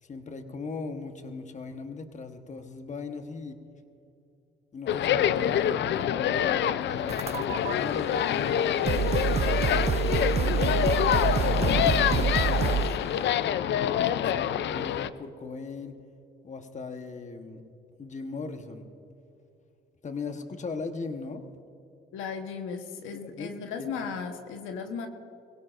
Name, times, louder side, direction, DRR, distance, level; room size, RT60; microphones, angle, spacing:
voice 1, 0.0-3.6 4.7-10.9 11.2-13.3 13.7-16.0 16.4-17.6 18.0-18.9 20.0-21.4 23.1-24.1, left 4 dB, 35° left, 6 dB, 1.2 m, -39 dB
sound 1, 4.9-15.1, left 10 dB, 65° left, 0.5 m, -26 dB
sound 2, 7.1-7.7 8.5-8.6 8.9-13.1, right 7 dB, 35° right, 0.4 m, -27 dB
voice 2, 22.1-25.1, left 6 dB, 90° left, 5 dB, 1.2 m, -36 dB
22.5 x 17.0 x 2.6 m, 2.8 s
cardioid pair, 90°, 20 cm